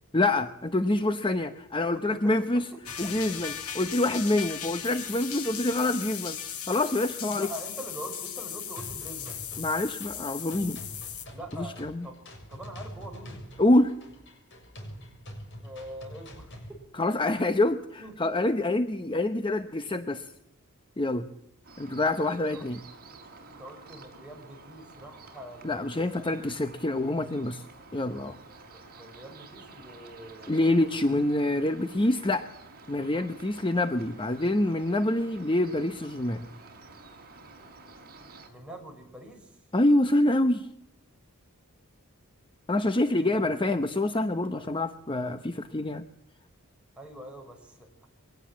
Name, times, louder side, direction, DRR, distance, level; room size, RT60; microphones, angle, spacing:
voice 1, 0.1-2.7 3.0-6.4 6.7-7.5 9.6-10.8 11.5-12.1 13.6-13.9 17.0-20.3 21.0-21.3 21.8-22.8 25.6-27.6 27.9-28.4 30.5-32.5 32.9-36.5 39.7-40.7 42.7-46.1, left 1 dB, 20° left, 10 dB, 0.8 m, -26 dB
voice 2, 1.9-2.6 7.3-9.4 11.3-11.8 12.0-12.2 12.5-13.4 15.6-16.6 18.0-18.2 22.5-22.7 23.5-25.9 28.7-31.0 38.5-39.6 43.2-43.5 47.0-48.1, right 1 dB, 5° right, 0 dB, 5.9 m, -44 dB
sound 1, 2.9-11.3, left 9 dB, 85° left, 2.7 m, -37 dB
sound 2, 8.8-16.8, equal, 55° left, 6.8 m, -45 dB
sound 3, 21.6-38.5, right 3 dB, 45° right, 5.8 m, -50 dB
23.5 x 18.5 x 7.5 m, 0.76 s
head